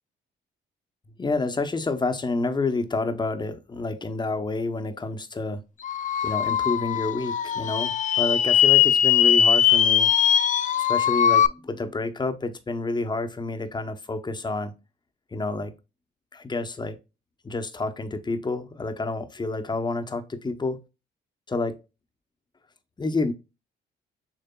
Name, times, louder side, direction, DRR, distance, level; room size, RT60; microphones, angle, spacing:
voice 1, 1.2-5.6 6.2-10.1 10.8-14.7 15.3-15.7 16.3-17.0 17.4-20.8 21.5-21.8 23.0-23.3, left 3 dB, 20° left, 0.8 m, -29 dB
sound 1, 5.8-11.5, left 9 dB, 40° left, 0.4 m, -20 dB
6.7 x 3.3 x 2.3 m
cardioid pair, 90°, 20 cm